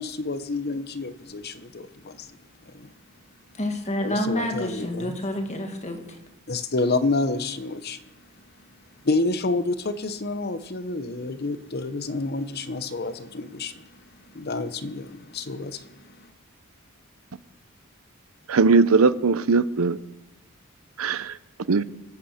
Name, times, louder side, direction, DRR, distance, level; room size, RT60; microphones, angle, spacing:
voice 1, 0.0-2.3 2.7-2.9 4.0-5.2 6.5-8.0 9.0-13.8 14.3-16.3, left 3 dB, 50° left, 1.0 m, -29 dB
voice 2, 3.6-6.0, left 1 dB, 35° left, 2.0 m, -28 dB
voice 3, 18.5-20.0 21.0-21.4 21.7-21.8, right 4 dB, 85° right, 0.6 m, -19 dB
24.5 x 8.6 x 5.8 m
head